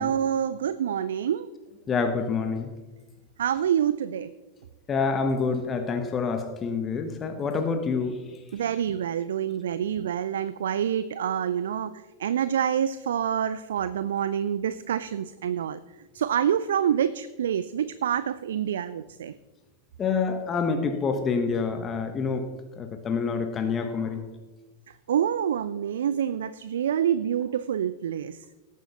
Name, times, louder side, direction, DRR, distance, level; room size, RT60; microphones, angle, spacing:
voice 1, 0.0-1.5 3.4-4.3 8.5-15.8 16.1-19.3 25.1-28.5, right 9 dB, 60° right, 15 dB, 0.3 m, -27 dB
voice 2, 1.9-2.7 4.9-8.3 20.0-22.5 22.8-24.2, left 5 dB, 25° left, 6 dB, 1.0 m, -27 dB
17.5 x 9.2 x 2.9 m, 1.2 s
figure-of-eight pair, 90°, 0 cm